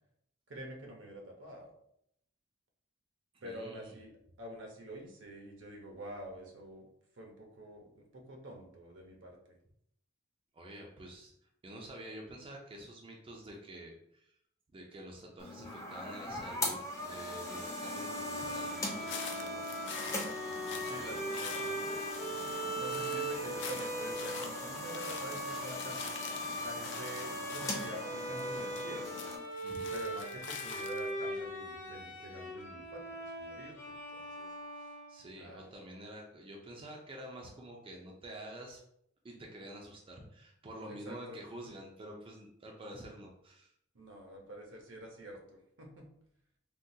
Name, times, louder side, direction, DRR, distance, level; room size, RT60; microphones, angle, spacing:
voice 1, 0.5-1.7 3.4-4.1 4.4-6.9 7.1-9.6 20.9-22.0 22.7-29.1 29.9-34.9 35.4-35.6 40.9-41.4 43.9-46.1, right 1 dB, 75° right, 1 dB, 0.8 m, -47 dB
voice 2, 3.3-3.9 10.5-11.3 11.6-14.3 14.7-19.6 20.4-21.2 29.6-29.9 35.1-38.8 39.2-43.7, right 1 dB, 30° right, 0 dB, 0.5 m, -48 dB
sound 1, 15.4-29.4, left 1 dB, 15° left, 0.7 m, -41 dB
Bowed string instrument, 17.5-35.3, right 1 dB, 45° left, 1.1 m, -40 dB
sound 2, 18.8-31.1, left 6 dB, 65° left, 0.4 m, -47 dB
3.6 x 2.3 x 2.7 m, 0.73 s
head